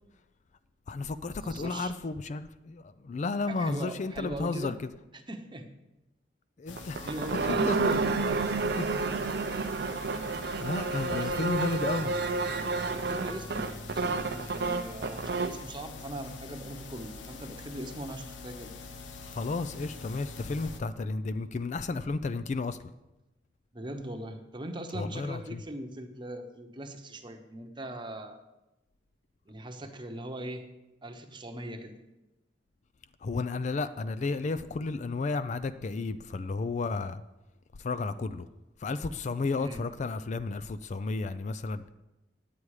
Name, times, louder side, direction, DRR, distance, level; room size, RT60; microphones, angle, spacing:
voice 1, 0.9-4.7 6.6-7.1 7.4-8.2 8.7-8.9 10.6-12.1 19.2-22.8 24.9-25.6 33.2-37.2 37.8-38.5 38.8-41.8, left 3 dB, 40° left, 0.4 m, -32 dB
voice 2, 1.4-1.9 3.5-4.8 5.1-5.7 7.0-7.7 11.0-11.4 12.8-18.7 23.7-28.4 29.5-30.6 31.0-32.0 39.5-39.8, right 1 dB, 25° right, 0.9 m, -40 dB
sound 1, 6.7-20.8, left 3 dB, 80° left, 0.8 m, -44 dB
sound 2, 6.8-15.6, right 4 dB, 60° right, 0.6 m, -30 dB
9.5 x 8.7 x 4.8 m
head